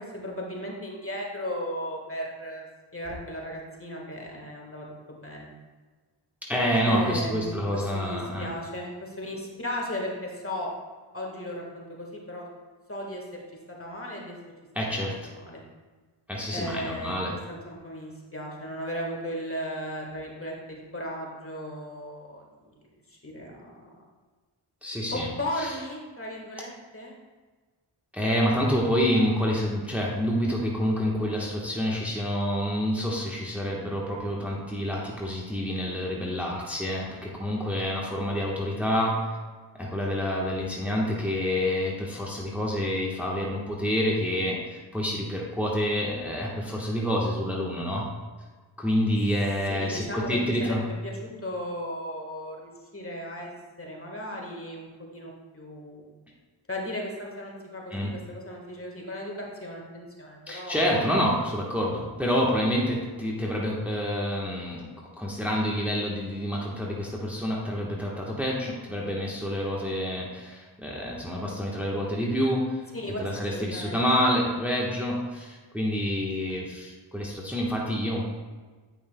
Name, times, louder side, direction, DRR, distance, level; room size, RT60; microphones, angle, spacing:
voice 1, 0.0-2.7 2.9-5.5 6.8-10.7 11.1-12.5 12.9-13.4 13.7-14.4 15.0-15.1 15.4-15.6 16.5-17.2 17.5-23.9 25.1-27.2 49.7-53.5 53.8-56.0 56.7-61.1 72.9-73.2 73.5-74.1, equal, 25° left, -1 dB, 1.5 m, -36 dB
voice 2, 6.5-8.5 14.7-15.3 16.3-17.4 24.8-25.3 25.6-25.7 28.1-39.4 39.7-48.1 48.8-50.8 57.9-58.1 60.5-64.9 65.2-78.3, equal, 5° right, -3 dB, 1.2 m, -28 dB
8.7 x 5.5 x 2.2 m, 1.4 s
cardioid pair, 40°, 48 cm